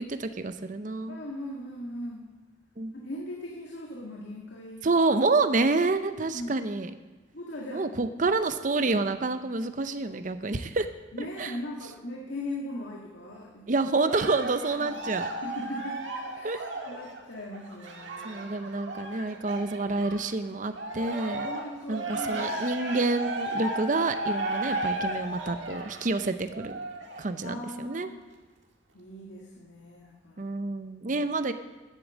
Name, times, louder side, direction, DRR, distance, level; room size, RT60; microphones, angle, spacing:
voice 1, 0.0-1.2 2.8-2.9 4.8-6.9 7.7-10.9 11.4-11.5 13.7-15.3 16.4-16.6 18.2-21.5 21.9-26.8 27.2-28.1 30.4-31.5, right 3 dB, 45° right, 9 dB, 0.7 m, -28 dB
voice 2, 1.1-2.3 3.0-4.9 6.2-6.6 7.3-7.9 11.1-13.7 14.8-14.9 15.4-16.0 16.3-18.4 21.4-22.7 27.4-28.2 28.9-30.5, left 1 dB, 80° left, -2 dB, 1.8 m, -39 dB
Cheering, 14.0-20.3 20.7-27.3 27.9-28.0, right 2 dB, 80° right, 1.8 m, -35 dB
10.5 x 8.5 x 7.4 m, 1.2 s
head